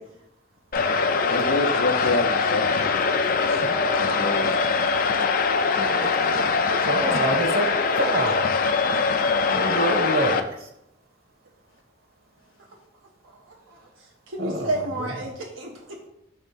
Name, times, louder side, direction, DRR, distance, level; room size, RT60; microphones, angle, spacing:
sound 1, 0.7-10.4, left 4 dB, 45° left, 0.5 m, -22 dB
voice 1, 1.3-2.9 3.3-3.6 4.0-4.6 5.7-6.4, left 2 dB, 80° left, 0 dB, 0.7 m, -28 dB
voice 2, 5.6-6.8 8.9-9.0 13.2-13.4 13.7-13.8 14.3-16.1, right 2 dB, 85° right, -1 dB, 0.9 m, -32 dB
voice 3, 6.9-7.7 8.0-8.5 9.5-10.4 14.4-14.7 15.0-15.1, right 1 dB, 50° right, 4 dB, 1.1 m, -25 dB
6.5 x 3.5 x 5.5 m, 0.80 s
head